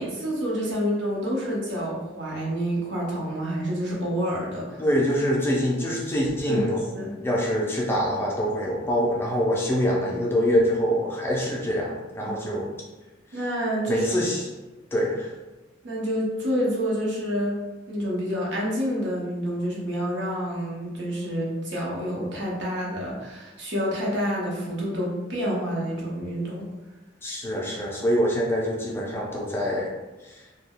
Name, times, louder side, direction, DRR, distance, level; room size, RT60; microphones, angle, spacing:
voice 1, 0.0-4.8 6.5-7.1 12.3-12.4 13.3-14.1 15.8-17.6 17.9-26.7, equal, 70° right, -4 dB, 0.8 m, -28 dB
voice 2, 4.8-6.8 7.2-12.7 13.9-14.5 14.9-15.3 27.2-29.9 30.2-30.5, equal, 10° left, -3 dB, 0.3 m, -25 dB
2.2 x 2.1 x 3.4 m, 1.1 s
head